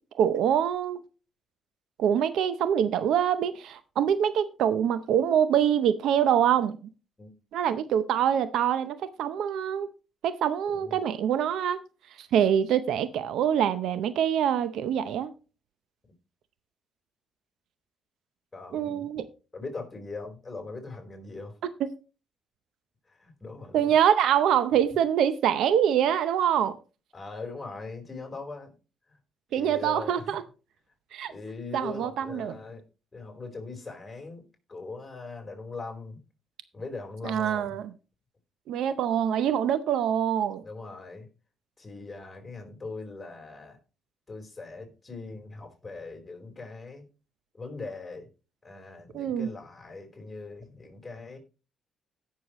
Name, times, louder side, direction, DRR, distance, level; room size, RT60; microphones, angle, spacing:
voice 1, 0.1-1.0 2.0-6.8 7.5-9.9 10.2-11.8 12.2-15.3 18.7-19.3 21.8-21.9 23.7-26.8 29.5-30.4 31.1-31.3 31.7-32.5 37.2-37.9 38.7-40.6 49.1-49.5, right 9 dB, 80° right, 0.6 m, -25 dB
voice 2, 10.7-11.1 18.5-19.1 19.5-21.5 23.1-23.9 27.1-28.7 29.5-30.4 31.3-32.8 33.1-34.4 34.7-36.2 36.7-37.8 40.6-41.3 41.8-43.8 44.3-47.1 47.5-48.3 48.6-51.4, left 3 dB, 20° left, 4.2 m, -40 dB
16.5 x 6.5 x 3.0 m
cardioid pair, 90°, 0 cm